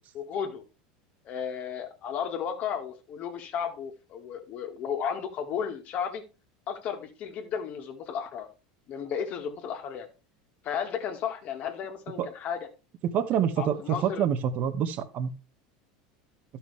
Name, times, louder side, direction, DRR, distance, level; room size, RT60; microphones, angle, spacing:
voice 1, 0.2-0.6 1.2-6.2 6.7-8.5 8.9-10.1 10.6-12.6 13.6-14.2, left 7 dB, 45° left, 5 dB, 2.0 m, -34 dB
voice 2, 13.0-15.3, right 8 dB, 45° right, 10 dB, 1.3 m, -27 dB
12.0 x 5.9 x 3.4 m, 0.31 s
supercardioid pair, 110°, 4 cm